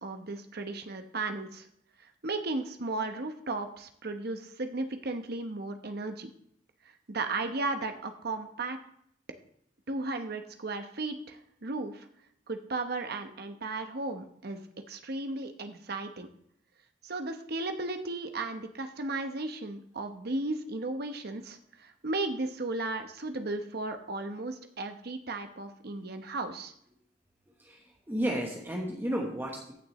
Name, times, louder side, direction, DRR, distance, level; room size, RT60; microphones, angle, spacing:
voice 1, 0.0-1.7 2.2-6.3 7.1-8.8 9.9-12.1 12.5-14.6 14.9-16.3 17.0-26.7, right 2 dB, 60° right, 7 dB, 1.0 m, -35 dB
voice 2, 27.6-29.7, equal, 10° right, -1 dB, 1.2 m, -33 dB
14.5 x 6.7 x 3.1 m, 0.69 s
head